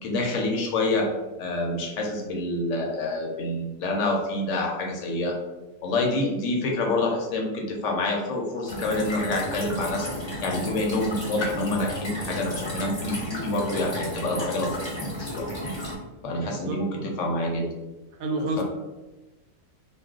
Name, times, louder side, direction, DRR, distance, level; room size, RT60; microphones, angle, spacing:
voice 1, 0.0-1.1 1.4-5.4 5.8-10.1 10.4-14.8 15.2-15.5 16.2-17.7 18.6-18.7, left 2 dB, 70° left, 0 dB, 0.9 m, -27 dB
sound 1, 8.7-15.9, equal, 25° left, 0.7 m, -33 dB
voice 2, 16.4-17.1 18.2-18.6, right 2 dB, 85° right, 3 dB, 1.0 m, -30 dB
2.4 x 2.2 x 3.6 m, 1.1 s
omnidirectional pair, 1.4 m